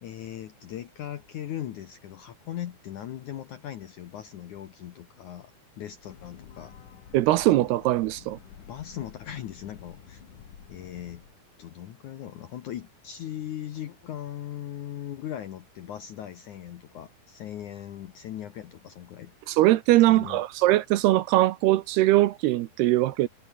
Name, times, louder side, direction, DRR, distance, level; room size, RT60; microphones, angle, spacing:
voice 1, 0.0-5.5 5.8-6.7 8.6-10.2 10.7-11.2 11.6-19.3 20.1-20.4, left 11 dB, 70° left, 2.0 m, -39 dB
Breathing / Train, 5.9-11.4, left 8 dB, 50° left, 3.8 m, -49 dB
voice 2, 7.1-8.4 19.5-23.3, right 16 dB, 75° right, 2.7 m, -21 dB
omnidirectional pair, 5.0 m